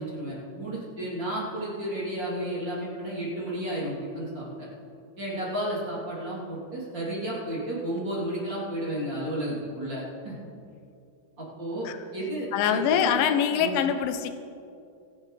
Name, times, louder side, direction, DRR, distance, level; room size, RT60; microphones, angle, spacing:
voice 1, 0.0-4.5 5.2-10.3 11.4-13.3 13.6-13.8, right 1 dB, 30° right, -7 dB, 3.3 m, -32 dB
voice 2, 12.5-14.3, left 9 dB, 85° left, 9 dB, 2.1 m, -24 dB
24.5 x 10.0 x 3.3 m, 2.6 s
omnidirectional pair, 4.8 m